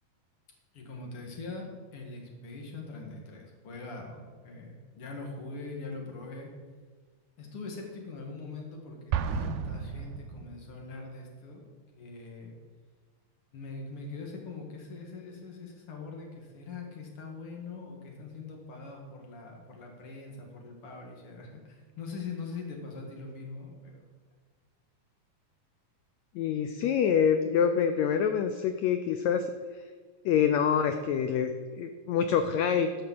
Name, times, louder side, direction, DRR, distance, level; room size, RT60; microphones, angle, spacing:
voice 1, 0.7-6.5 7.4-11.6 11.9-12.5 13.5-24.0, left 3 dB, 45° left, 1 dB, 2.4 m, -42 dB
Explosion, 9.1-10.9, right 7 dB, 80° right, 2.0 m, -33 dB
voice 2, 26.3-29.5 30.2-33.0, left 7 dB, 90° left, 8 dB, 1.5 m, -26 dB
12.5 x 5.4 x 7.5 m, 1.5 s
omnidirectional pair, 3.9 m